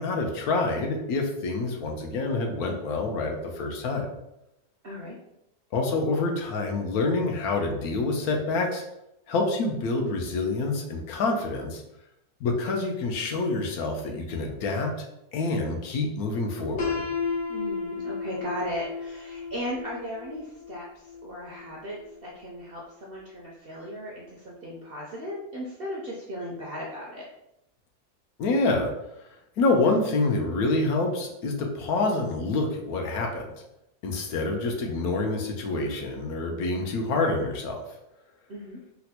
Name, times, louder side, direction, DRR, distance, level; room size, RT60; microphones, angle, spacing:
voice 1, 0.0-4.0 5.7-8.8 9.3-11.8 12.4-15.1 15.3-17.0 28.4-28.9 29.6-33.5 34.0-37.8, left 3 dB, 80° left, 2 dB, 1.1 m, -27 dB
voice 2, 4.8-5.2 17.5-27.3 38.5-38.8, equal, 65° right, -4 dB, 0.6 m, -36 dB
Piano, 16.8-22.6, left 5 dB, 55° left, 0.9 m, -34 dB
4.2 x 2.1 x 2.7 m, 0.84 s
omnidirectional pair, 1.6 m